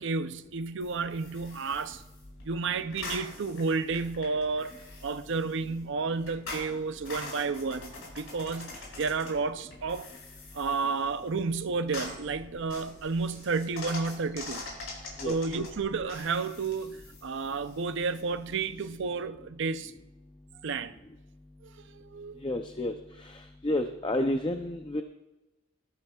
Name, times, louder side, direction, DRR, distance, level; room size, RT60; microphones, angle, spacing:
voice 1, 0.0-2.0 2.4-10.1 10.5-14.7 15.2-19.9 20.6-20.9 21.9-22.4, right 4 dB, 55° right, 0.5 m, -31 dB
sound 1, 0.8-19.0, left 2 dB, 70° left, 5.0 m, -45 dB
voice 2, 22.4-25.0, left 1 dB, 20° left, 0.5 m, -31 dB
18.0 x 13.0 x 2.3 m
head